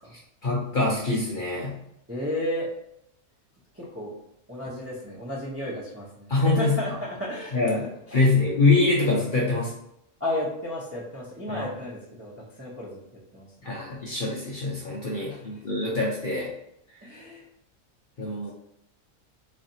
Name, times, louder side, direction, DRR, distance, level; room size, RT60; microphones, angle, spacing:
voice 1, 0.4-1.8 6.3-6.8 7.5-7.8 8.1-9.7 11.5-11.7 13.6-16.5 18.2-18.5, left 3 dB, 45° left, -4 dB, 0.7 m, -24 dB
voice 2, 2.1-2.7 3.7-4.1 4.5-7.6 8.1-8.3 10.2-12.3 12.6-13.0 13.3-13.5 15.3-15.6 17.0-17.4, left 1 dB, 15° right, -5 dB, 0.5 m, -33 dB
3.9 x 3.2 x 2.7 m, 0.77 s
omnidirectional pair, 1.5 m